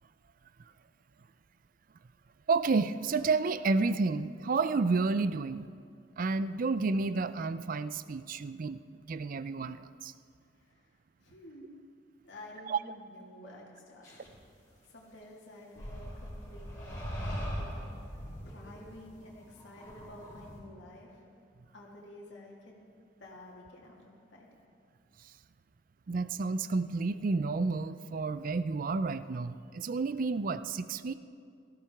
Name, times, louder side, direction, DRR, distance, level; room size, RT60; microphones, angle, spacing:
voice 1, 2.5-5.6 6.2-8.8 9.1-10.1 12.7-12.8 26.1-31.1, right 4 dB, 45° right, 13 dB, 0.4 m, -30 dB
voice 2, 11.2-11.8 12.2-14.3 14.8-18.0 18.5-21.2 21.7-22.8 23.2-24.5, left 1 dB, 75° left, -3 dB, 2.0 m, -51 dB
sound 1, 14.0-14.3 15.8-20.6, equal, 15° left, 3.8 m, -40 dB
18.0 x 14.0 x 3.5 m, 2.3 s
head